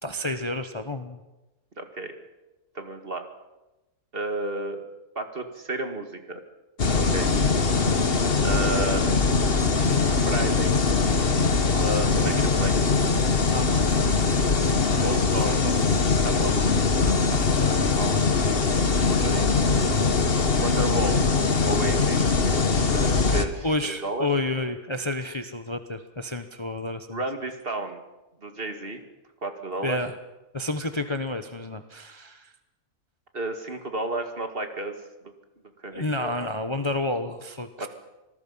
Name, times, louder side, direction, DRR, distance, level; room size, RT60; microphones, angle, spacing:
voice 1, 0.0-1.2 12.2-12.3 13.5-13.7 15.0-15.1 15.5-15.8 23.6-27.2 29.8-30.2 30.5-32.5 35.9-37.9, left 2 dB, 20° left, 8 dB, 1.0 m, -30 dB
voice 2, 1.8-2.1 2.7-3.3 4.1-4.8 5.2-6.4 6.9-7.3 8.4-9.1 10.1-10.8 11.7-12.7 14.9-15.6 16.2-16.6 16.9-18.2 19.1-19.5 20.6-21.2 21.7-22.3 22.9-24.3 27.1-28.0 28.4-29.0 29.4-30.0 33.3-34.9 35.2-35.3 35.8-36.5 37.8-37.9, right 2 dB, 40° right, 6 dB, 2.2 m, -32 dB
sound 1, 6.8-23.5, left 4 dB, 45° left, 1.5 m, -22 dB
26.0 x 19.5 x 5.6 m, 1.1 s
omnidirectional pair, 1.5 m